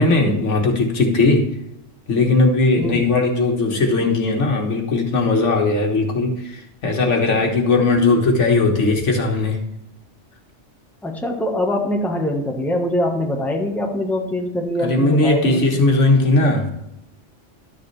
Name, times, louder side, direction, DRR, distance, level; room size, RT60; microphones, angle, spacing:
voice 1, 0.0-1.5 2.1-9.6 14.8-16.7, left 3 dB, 85° left, 2 dB, 1.8 m, -18 dB
voice 2, 11.0-15.6, left 1 dB, ahead, 1 dB, 1.2 m, -23 dB
12.0 x 6.8 x 3.3 m, 0.82 s
omnidirectional pair, 1.2 m